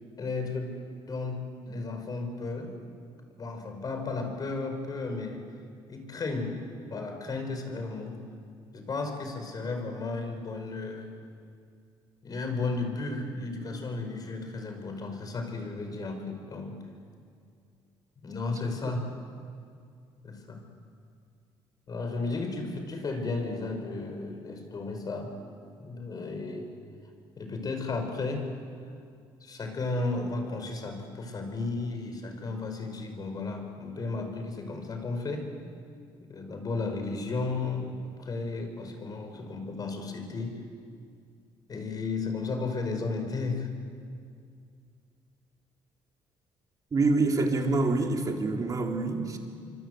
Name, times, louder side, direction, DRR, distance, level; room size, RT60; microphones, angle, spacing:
voice 1, 0.2-0.8 1.1-2.8 3.4-5.4 5.9-6.6 6.9-8.2 8.7-11.1 12.2-16.7 18.2-19.1 20.2-20.6 21.9-25.3 25.8-26.7 27.4-28.5 29.4-35.5 36.2-37.9 38.2-40.6 41.7-43.7, left 3 dB, 40° left, 5 dB, 5.4 m, -34 dB
voice 2, 46.9-49.4, right 3 dB, 35° right, 2 dB, 3.8 m, -26 dB
26.5 x 24.5 x 8.1 m, 2.3 s
cardioid pair, 90°, 10 cm